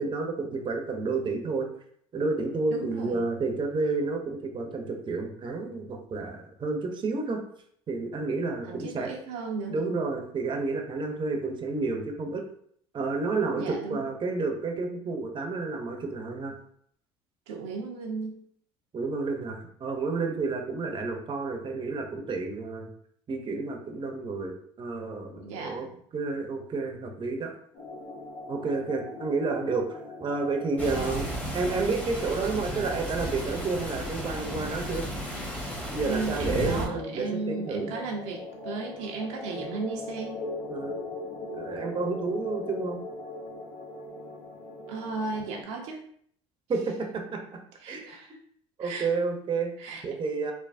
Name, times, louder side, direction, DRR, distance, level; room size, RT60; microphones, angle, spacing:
voice 1, 0.0-1.7 2.1-7.4 7.9-9.1 9.7-12.4 12.9-16.5 18.9-22.9 23.3-25.9 26.1-27.5 28.5-35.0 35.9-37.9 40.7-41.0 41.5-43.0 46.7-47.6 47.9-48.1 48.8-49.7 50.0-50.5, right 3 dB, 35° right, 3 dB, 0.6 m, -30 dB
voice 2, 2.7-3.2 8.6-9.7 13.6-14.0 17.5-18.4 25.4-25.9 36.1-40.4 44.9-46.0 47.8-48.3 48.8-49.1 49.8-50.0, right 4 dB, 75° right, 0 dB, 0.5 m, -35 dB
sound 1, 27.7-45.6, left 2 dB, 65° left, 0.7 m, -41 dB
sound 2, 30.8-36.9, equal, 10° left, 0.8 m, -34 dB
3.2 x 2.0 x 2.5 m, 0.64 s
hypercardioid pair, 70°, 15 cm